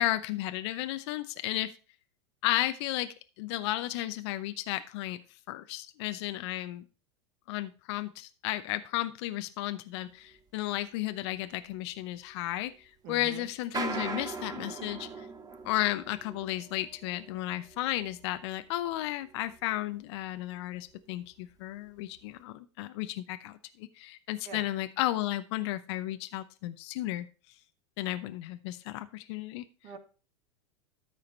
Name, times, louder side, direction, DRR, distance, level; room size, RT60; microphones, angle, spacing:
voice 1, 0.0-1.7 2.4-5.2 5.5-6.8 7.5-15.1 15.6-27.3 28.0-29.6, left 15 dB, 60° left, 11 dB, 0.7 m, -33 dB
sound 1, 10.3-10.4 10.7-10.8 11.5-11.7 12.4-12.6 13.5-19.9 20.4-20.7 20.9-21.0 21.5-21.6 22.2-22.3, right 4 dB, 25° right, 1.8 m, -41 dB
voice 2, 13.0-13.5 24.4-24.7 29.8-30.0, right 6 dB, 50° right, 5 dB, 2.2 m, -44 dB
13.0 x 5.0 x 4.4 m, 0.36 s
hypercardioid pair, 95°, 16 cm